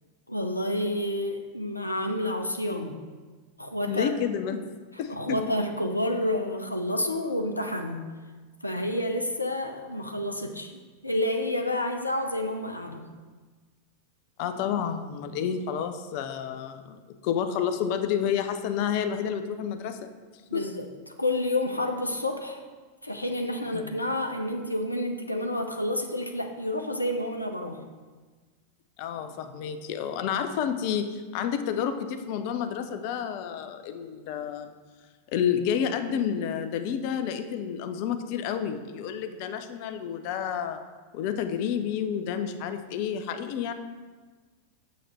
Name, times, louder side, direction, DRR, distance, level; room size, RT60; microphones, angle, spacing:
voice 1, 0.3-3.0 3.6-4.1 5.1-8.2 8.6-10.7 11.0-13.1 20.5-20.9 21.2-22.6 23.0-27.8, left 1 dB, 85° left, 4 dB, 0.6 m, -29 dB
voice 2, 3.9-4.6 5.0-5.4 14.4-20.1 20.5-20.7 23.7-24.0 29.0-34.7 35.3-40.8 41.1-43.7, left 8 dB, 45° left, 8 dB, 0.6 m, -30 dB
6.5 x 6.5 x 4.3 m, 1.4 s
figure-of-eight pair, 90°, 0 cm